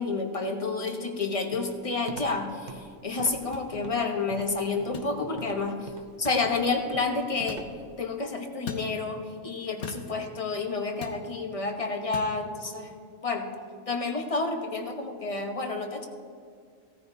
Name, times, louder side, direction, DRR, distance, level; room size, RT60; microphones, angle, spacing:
voice 1, 0.0-5.9 6.2-7.6 8.0-12.9 13.2-13.5 13.9-16.1, left 3 dB, 30° left, 4 dB, 1.0 m, -30 dB
Walk footsteps, 1.5-8.0, right 4 dB, 40° right, 0.9 m, -44 dB
sound 1, 3.5-3.7 4.9-5.1 6.2-6.4 7.5-7.7 8.7-8.9 9.8-10.1 11.0-11.2 12.1-12.3, left 4 dB, 65° left, 1.3 m, -38 dB
17.0 x 14.0 x 2.7 m, 2.1 s
omnidirectional pair, 1.3 m